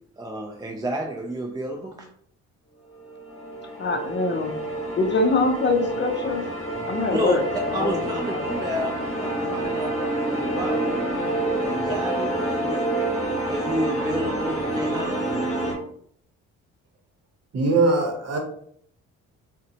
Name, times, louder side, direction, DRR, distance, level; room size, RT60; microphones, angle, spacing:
voice 1, 0.2-2.1 7.1-7.4 7.7-11.2 11.6-12.9 13.4-15.3, right 1 dB, 15° right, 1 dB, 0.4 m, -31 dB
sound 1, 2.9-15.7, right 1 dB, 20° left, 1.3 m, -28 dB
voice 2, 3.8-4.6 5.0-6.4 6.8-8.5, left 3 dB, 40° left, 4 dB, 0.5 m, -24 dB
voice 3, 17.5-18.4, right 3 dB, 55° right, 3 dB, 0.9 m, -21 dB
3.7 x 2.2 x 2.8 m, 0.65 s
cardioid pair, 90°, 30 cm